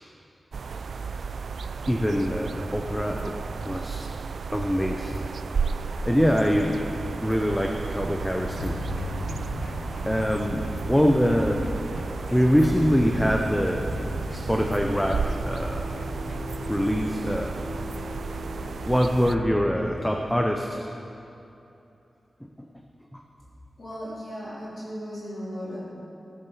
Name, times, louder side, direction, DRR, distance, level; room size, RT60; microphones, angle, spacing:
sound 1, 0.5-19.4, right 5 dB, 65° right, 0.3 m, -33 dB
voice 1, 1.9-3.3 3.6-4.0 4.5-5.3 6.1-6.9 7.2-8.8 10.0-11.6 12.3-14.0 14.3-15.9 16.7-17.6 18.8-20.8 22.4-22.7 23.1-23.2, equal, 5° left, 2 dB, 0.5 m, -24 dB
sound 2, 8.4-19.4, left 2 dB, 90° left, 1.3 m, -36 dB
voice 2, 23.8-25.8, equal, 40° left, -9 dB, 2.9 m, -36 dB
16.0 x 7.5 x 4.8 m, 2.8 s
wide cardioid pair, 165°, 0 cm